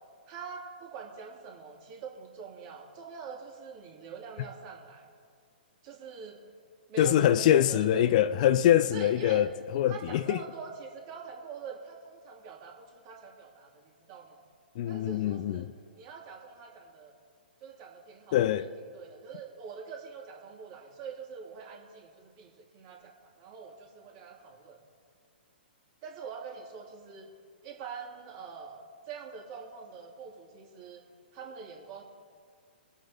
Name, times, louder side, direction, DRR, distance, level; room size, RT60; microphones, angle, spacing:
voice 1, 0.2-5.1 5.8-6.5 6.9-8.2 8.9-9.4 9.9-14.4 14.9-15.7 16.0-17.1 17.6-18.4 18.9-24.8 26.0-27.3 27.6-31.0 31.3-32.0, right 6 dB, 40° right, 2.9 m, -45 dB
voice 2, 7.0-10.4 14.8-15.7 18.3-18.7, left 11 dB, 45° left, 0.5 m, -24 dB
24.5 x 8.2 x 3.6 m
figure-of-eight pair, 120°, 6 cm